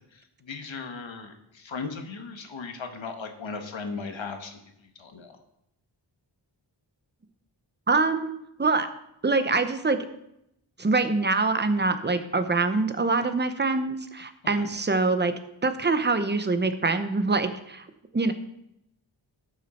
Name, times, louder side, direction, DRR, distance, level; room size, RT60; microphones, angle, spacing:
voice 1, 0.4-4.6 5.0-5.3, left 4 dB, 80° left, 5 dB, 1.3 m, -37 dB
voice 2, 7.9-8.3 8.6-8.9 9.2-10.0 10.8-15.3 15.6-17.9 18.1-18.3, right 3 dB, 25° right, 9 dB, 0.7 m, -24 dB
12.5 x 6.4 x 4.3 m, 0.80 s
wide cardioid pair, 100°, 45 cm